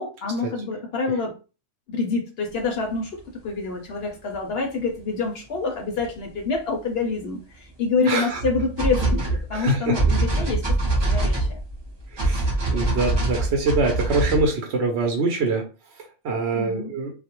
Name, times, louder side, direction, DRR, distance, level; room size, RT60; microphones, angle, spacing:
voice 1, 0.0-1.4 1.9-11.6 16.5-16.9, left 4 dB, 65° left, 2 dB, 0.7 m, -27 dB
sound 1, 4.3-4.4 6.0-6.1 6.5-6.6 8.3-14.5, right 2 dB, 30° right, 0.5 m, -24 dB
voice 2, 8.1-8.4 9.5-10.0 11.0-11.3 12.1-15.6 16.0-17.1, right 3 dB, 65° right, 1 dB, 0.8 m, -24 dB
2.3 x 2.1 x 2.8 m, 0.33 s
omnidirectional pair, 1.3 m